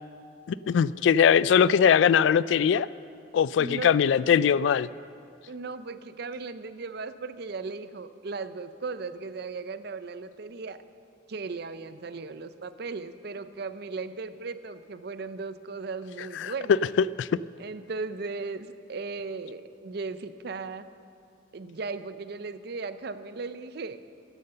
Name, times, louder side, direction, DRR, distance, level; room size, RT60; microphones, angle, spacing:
voice 1, 0.5-2.9 3.3-4.9 16.4-16.8 17.2-17.3, left 7 dB, 85° left, 19 dB, 0.3 m, -21 dB
voice 2, 3.6-4.0 5.5-10.8 11.3-16.8 17.6-20.9 21.5-24.0, right 4 dB, 60° right, 12 dB, 0.5 m, -37 dB
12.5 x 10.5 x 6.7 m, 2.4 s
head